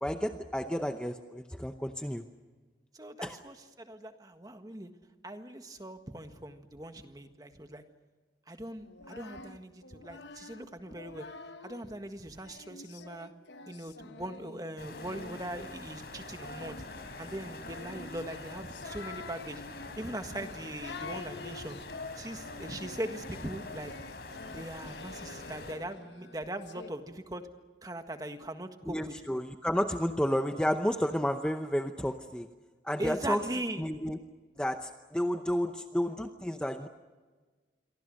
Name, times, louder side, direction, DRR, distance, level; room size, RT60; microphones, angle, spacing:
voice 1, 0.0-2.2 3.2-3.4 28.9-32.5 32.8-33.4 33.8-34.2 34.6-36.9, equal, 5° left, 6 dB, 0.7 m, -31 dB
voice 2, 2.9-4.9 5.2-7.8 8.5-11.3 11.6-13.3 13.6-16.8 17.2-19.6 20.0-21.8 22.1-23.9 24.5-27.4 27.8-29.1 33.0-33.8, right 1 dB, 20° right, 7 dB, 1.6 m, -40 dB
Singing, 8.8-11.9 12.4-26.9, left 3 dB, 90° left, 1.3 m, -47 dB
sound 1, 14.8-25.7, left 2 dB, 65° left, 4.3 m, -45 dB
28.5 x 23.5 x 6.5 m, 1.4 s
head